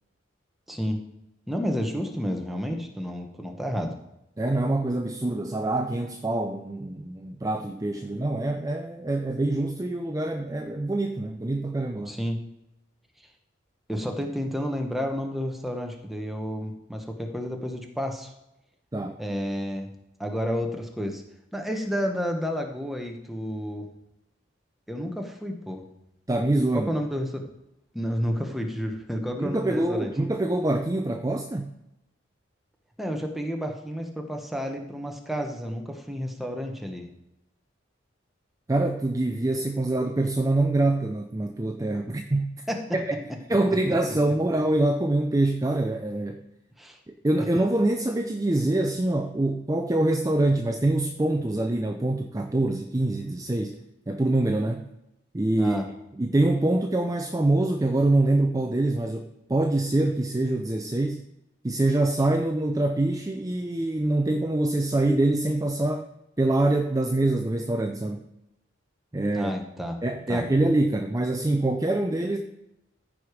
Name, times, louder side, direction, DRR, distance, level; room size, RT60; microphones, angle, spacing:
voice 1, 0.7-1.0 1.5-4.0 12.1-12.4 13.9-18.3 19.2-19.9 20.2-21.2 21.5-23.9 24.9-25.8 26.7-27.5 27.9-30.1 33.0-37.1 42.7-43.0 46.8-47.0 55.6-55.9 69.3-70.0 70.3-70.4, equal, ahead, 3 dB, 1.0 m, -30 dB
voice 2, 4.4-12.1 18.9-19.2 26.3-26.9 29.4-31.7 38.7-42.5 42.9-43.1 43.5-46.4 47.1-53.8 54.1-54.9 55.3-55.8 56.2-61.2 61.6-66.1 66.4-68.2 69.1-69.5 70.0-72.4, right 2 dB, 15° right, 5 dB, 0.4 m, -25 dB
14.5 x 4.8 x 5.0 m, 0.88 s
head